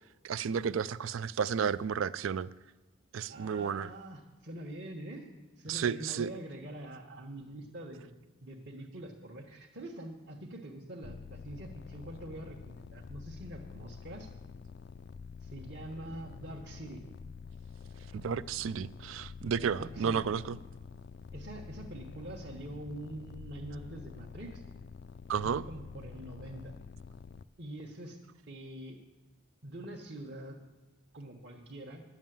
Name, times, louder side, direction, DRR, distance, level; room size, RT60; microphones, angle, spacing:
voice 1, 0.2-2.5 3.1-3.9 5.7-6.3 18.1-20.6 25.3-25.6, right 7 dB, 75° right, 0.4 m, -32 dB
voice 2, 3.3-5.3 5.6-8.1 8.4-14.3 15.4-17.0 19.8-20.2 21.3-24.6 25.4-26.7 27.6-28.2 28.5-29.0 29.6-30.6 31.1-32.0, right 1 dB, 50° right, 1.2 m, -44 dB
sound 1, 11.0-27.5, left 5 dB, 50° left, 0.3 m, -48 dB
11.0 x 7.3 x 9.2 m
head